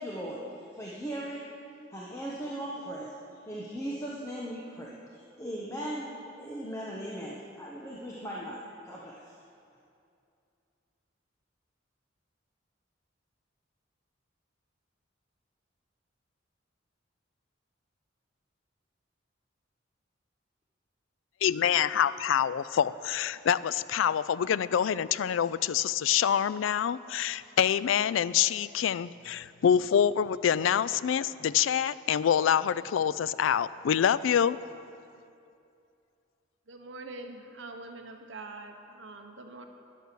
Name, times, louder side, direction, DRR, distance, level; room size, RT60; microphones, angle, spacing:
voice 1, 0.0-1.5 1.9-9.3, right 1 dB, 15° left, -4 dB, 1.1 m, -38 dB
voice 2, 21.4-34.6, left 8 dB, 85° left, 17 dB, 0.3 m, -26 dB
voice 3, 36.7-39.6, right 2 dB, 70° right, 4 dB, 0.9 m, -44 dB
11.0 x 11.0 x 6.8 m, 2.5 s
head